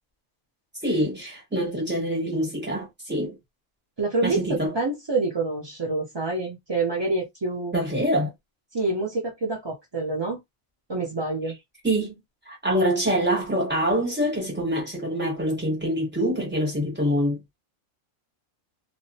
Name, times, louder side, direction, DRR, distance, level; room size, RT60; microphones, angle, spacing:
voice 1, 0.8-3.4 4.2-4.7 7.7-8.3 11.8-12.1 12.5-17.6, equal, 10° right, 1.0 m, -25 dB
voice 2, 4.0-7.7 8.7-10.4 10.9-11.6, right 3 dB, 40° right, 0.4 m, -27 dB
2.6 x 2.0 x 2.7 m
omnidirectional pair, 1.5 m